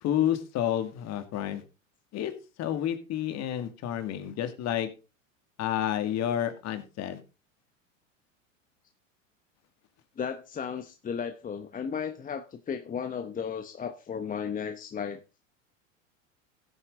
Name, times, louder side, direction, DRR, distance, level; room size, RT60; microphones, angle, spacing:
voice 1, 0.0-1.6 2.1-2.3 2.6-4.9 5.6-7.2, left 11 dB, 40° left, 9 dB, 2.3 m, -30 dB
voice 2, 10.2-15.2, left 7 dB, 20° left, 8 dB, 1.0 m, -34 dB
15.5 x 8.7 x 3.8 m, 0.31 s
hypercardioid pair, 95°, 39 cm